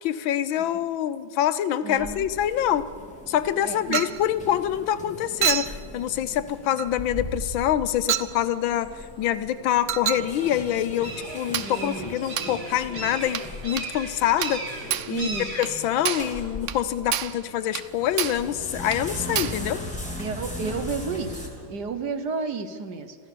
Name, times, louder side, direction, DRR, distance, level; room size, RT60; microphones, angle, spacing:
voice 1, 0.0-2.9 3.3-8.9 9.2-14.6 15.1-19.8, left 11 dB, 85° left, 12 dB, 1.6 m, -25 dB
voice 2, 1.8-2.2 3.6-4.0 11.6-12.5 15.1-15.6 19.3-19.4 20.2-23.2, right 4 dB, 60° right, 9 dB, 1.7 m, -32 dB
sound 1, 2.0-17.2 17.6-21.5, left 1 dB, 5° left, 2.8 m, -39 dB
Chink clink, 3.9-4.2 5.4-5.8 6.8-6.9 8.1-8.3 9.9-10.3 11.5-11.8 12.4-12.6 13.3-13.5 13.8-13.9 14.4-14.6 14.9-15.1 15.6-15.7 16.0-16.3 16.7-16.8 17.1-17.4 17.7-17.9 18.2-18.5 18.9-19.0 19.3-19.6, right 10 dB, 75° right, 0.6 m, -28 dB
sound 2, 7.9-21.7, right 2 dB, 45° right, 2.5 m, -41 dB
27.0 x 14.5 x 6.8 m, 2.1 s
omnidirectional pair, 2.1 m